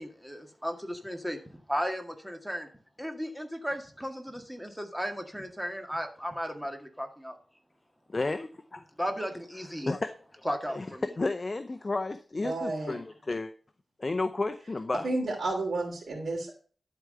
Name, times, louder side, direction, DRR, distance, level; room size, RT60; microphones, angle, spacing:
voice 1, 0.0-1.4 1.7-2.7 3.0-7.3 9.0-9.9 10.4-11.0, equal, ahead, 4 dB, 1.9 m, -35 dB
voice 2, 8.1-8.8 9.9-10.1 10.7-13.5 14.0-15.1, left 3 dB, 40° left, 8 dB, 0.6 m, -32 dB
voice 3, 12.4-13.0 15.0-16.5, right 2 dB, 85° right, -5 dB, 3.5 m, -31 dB
11.5 x 4.8 x 6.8 m, 0.42 s
wide cardioid pair, 100°, 0 cm